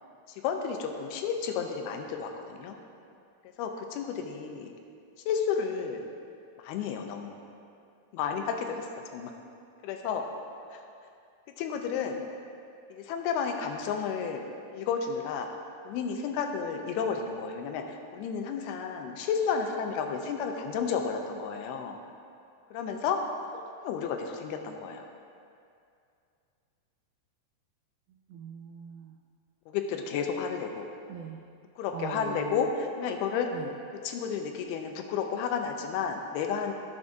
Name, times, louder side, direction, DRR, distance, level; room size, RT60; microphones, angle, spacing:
voice 1, 0.4-2.8 3.6-4.7 5.3-6.1 6.6-7.4 8.1-8.9 9.1-9.3 9.8-10.2 10.7-10.8 11.6-12.2 12.9-14.5 14.7-15.5 15.9-22.0 22.7-23.2 23.8-25.1 29.7-30.8 31.8-33.5 34.0-36.7, left 6 dB, 80° left, 4 dB, 2.5 m, -32 dB
voice 2, 28.1-29.2 31.1-31.4 31.9-32.7 33.5-33.7, right 9 dB, 90° right, 3 dB, 2.0 m, -41 dB
16.5 x 7.2 x 2.6 m, 2.5 s
omnidirectional pair, 4.7 m